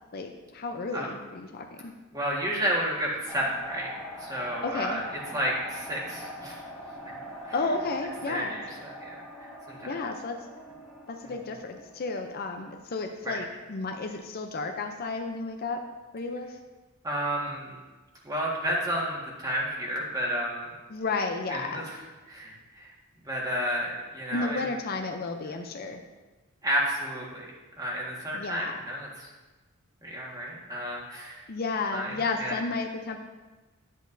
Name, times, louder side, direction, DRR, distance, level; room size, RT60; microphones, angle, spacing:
voice 1, 0.1-1.9 4.6-5.0 7.5-8.6 9.8-10.4 11.1-15.8 16.1-16.6 20.9-21.8 24.3-26.0 28.3-28.8 31.5-33.2, left 3 dB, 45° left, 4 dB, 0.5 m, -32 dB
voice 2, 2.1-3.9 4.2-5.0 5.3-6.6 7.0-7.2 7.4-7.5 8.3-9.1 9.4-9.8 13.2-13.4 17.0-17.8 18.2-20.7 21.5-22.0 22.3-22.9 23.2-24.7 26.6-27.5 27.8-29.3 30.0-31.4 31.9-32.5, equal, 15° right, -3 dB, 1.6 m, -31 dB
sound 1, 3.3-12.2, equal, ahead, 1.7 m, -43 dB
11.5 x 8.2 x 2.7 m, 1.2 s
head